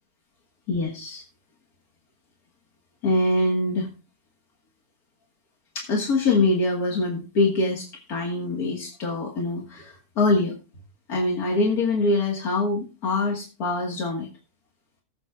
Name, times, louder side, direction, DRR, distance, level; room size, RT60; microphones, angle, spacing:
voice 1, 0.7-1.2 3.0-3.9 5.8-10.6 11.1-14.3, left 2 dB, 85° left, 1 dB, 2.1 m, -24 dB
19.5 x 7.8 x 2.3 m, 0.30 s
omnidirectional pair, 1.5 m